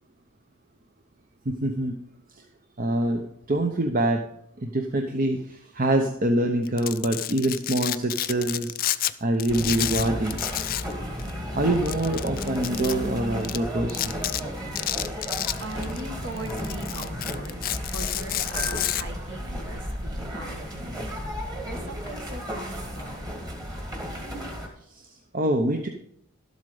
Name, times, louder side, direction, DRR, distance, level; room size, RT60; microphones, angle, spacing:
voice 1, 1.5-1.9 2.8-4.2 4.6-8.7 9.2-10.4 11.5-14.1 18.6-19.0 24.9-25.1 25.3-25.9, right 1 dB, 40° right, 4 dB, 0.8 m, -25 dB
Domestic sounds home sounds, 6.6-9.1 9.4-10.9 11.2-11.3 11.9-12.9 13.4-13.6 13.9-14.4 14.8-16.0 16.4-19.0, left 14 dB, 40° left, 0.4 m, -29 dB
sound 1, 9.5-24.7, equal, 20° right, 1.9 m, -34 dB
voice 2, 14.7-23.3, right 1 dB, 55° right, 4 dB, 1.8 m, -40 dB
12.5 x 8.1 x 4.9 m, 0.72 s
head